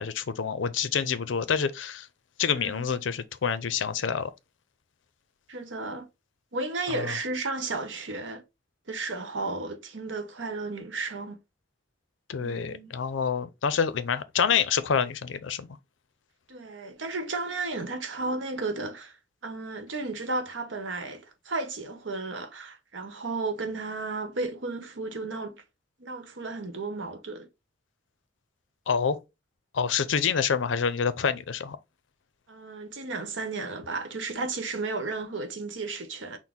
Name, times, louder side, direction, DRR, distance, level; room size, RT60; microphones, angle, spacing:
voice 1, 0.0-2.1 2.4-4.3 6.9-7.1 12.3-15.7 28.9-29.2 29.7-31.8, left 6 dB, 85° left, 0.5 m, -27 dB
voice 2, 2.5-2.9 5.5-6.1 6.5-8.4 8.9-11.4 12.4-12.9 16.5-19.1 19.4-25.6 26.0-27.5 32.5-36.4, right 3 dB, 85° right, 0.9 m, -33 dB
6.1 x 2.1 x 3.6 m
head